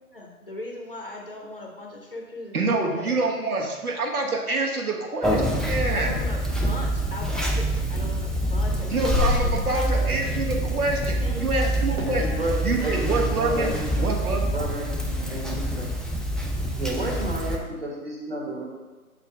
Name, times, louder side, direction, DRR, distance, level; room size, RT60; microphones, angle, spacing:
voice 1, 0.1-3.2 5.9-10.2 11.2-11.5 11.9-12.3 12.7-13.4, left 2 dB, 40° left, 0 dB, 0.7 m, -39 dB
voice 2, 2.5-6.2 8.9-12.3 12.6-13.7 14.0-14.5, right 3 dB, 75° right, 1 dB, 1.3 m, -26 dB
Conversation, 5.2-17.6, equal, ahead, 0.3 m, -26 dB
voice 3, 12.2-14.1 14.5-14.9 15.3-15.9 16.8-18.6, right 1 dB, 40° right, -2 dB, 1.5 m, -31 dB
6.8 x 3.7 x 4.8 m, 1.2 s
hypercardioid pair, 175°, 45 cm